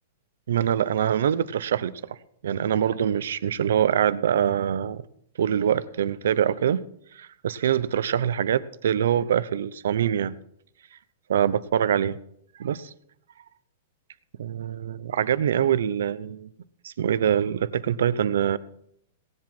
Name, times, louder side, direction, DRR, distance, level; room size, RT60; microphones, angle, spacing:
voice 1, 0.5-2.2 2.4-5.0 5.4-6.8 7.1-10.3 11.3-12.2 12.6-12.9 14.4-16.5 16.8-18.6, right 9 dB, 85° right, 17 dB, 0.7 m, -24 dB
18.0 x 7.7 x 5.9 m, 0.70 s
supercardioid pair, 155°, 0 cm